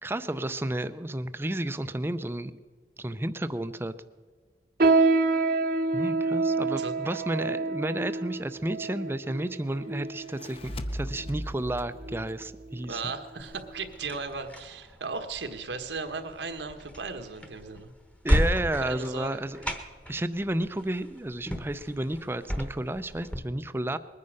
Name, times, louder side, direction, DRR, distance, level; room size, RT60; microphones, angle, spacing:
voice 1, 0.0-2.5 3.0-3.9 5.9-13.1 18.2-19.7 20.1-24.0, right 1 dB, 15° right, 12 dB, 0.4 m, -32 dB
sound 1, 4.8-10.5 11.1-11.3 12.0-12.3 12.7-12.9 13.6-13.7, right 3 dB, 55° right, 0.9 m, -27 dB
sound 2, 10.2-13.5, equal, 30° left, 0.7 m, -39 dB
voice 2, 12.9-17.9 18.8-19.4, right 4 dB, 85° right, 7 dB, 1.3 m, -36 dB
sound 3, 13.4-23.4, equal, 5° left, 1.0 m, -34 dB
21.0 x 9.6 x 6.5 m, 1.5 s
head